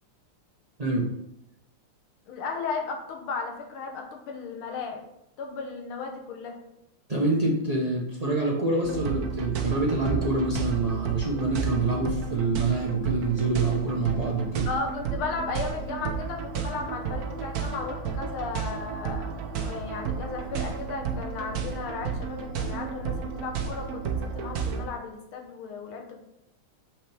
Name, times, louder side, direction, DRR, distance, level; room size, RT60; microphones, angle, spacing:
voice 1, 2.3-5.0 5.4-6.6 14.7-26.2, left 4 dB, 75° left, 2 dB, 1.9 m, -35 dB
voice 2, 7.1-14.7, right 3 dB, 40° right, -3 dB, 0.5 m, -26 dB
sound 1, 8.8-24.9, right 6 dB, 60° right, 1.0 m, -32 dB
6.9 x 5.9 x 3.5 m, 0.82 s
omnidirectional pair, 2.4 m